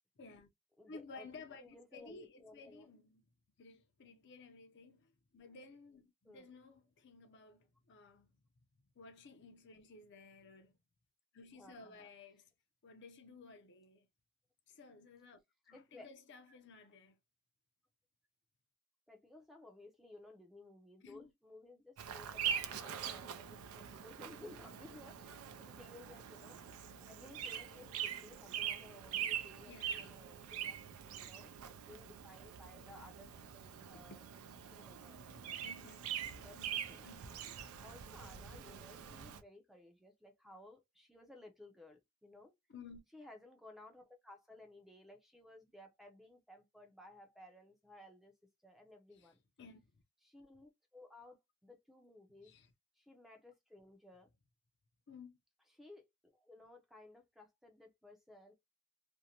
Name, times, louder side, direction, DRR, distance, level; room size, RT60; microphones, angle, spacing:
voice 1, 0.2-0.5 0.9-3.2 3.6-8.3 9.0-10.8 11.3-12.5 12.8-14.1 14.7-15.4 15.7-17.2 21.0-21.3 29.7-30.1 30.6-30.7 33.9-34.2 35.6-37.5 42.7-43.0 49.1-50.0 52.4-52.7 55.1-55.4, left 4 dB, 55° left, 0.5 m, -56 dB
voice 2, 0.8-1.3 1.6-2.9 6.2-6.5 11.5-12.1 15.7-16.1 19.1-26.6 27.1-30.8 31.1-31.5 31.8-34.2 34.7-35.6 36.4-37.1 37.8-42.5 43.1-48.3 48.6-49.4 50.2-52.5 53.0-54.3 55.7-58.5, left 1 dB, ahead, 0.5 m, -58 dB
Bird vocalization bird call bird song, 22.0-39.4, right 9 dB, 85° right, 0.4 m, -44 dB
2.5 x 2.1 x 2.8 m
head